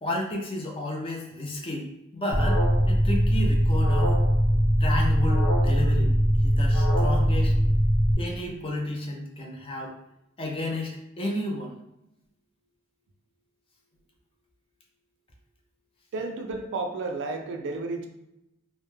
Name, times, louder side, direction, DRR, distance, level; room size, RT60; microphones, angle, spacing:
voice 1, 0.0-4.2 4.8-7.6 8.2-10.0 10.4-11.8, left 1 dB, 25° left, 0 dB, 0.4 m, -32 dB
Alarm, 2.3-8.1, equal, 55° left, 0.9 m, -21 dB
voice 2, 16.1-18.1, right 3 dB, 60° right, 4 dB, 0.3 m, -32 dB
2.2 x 2.0 x 3.1 m, 0.88 s
head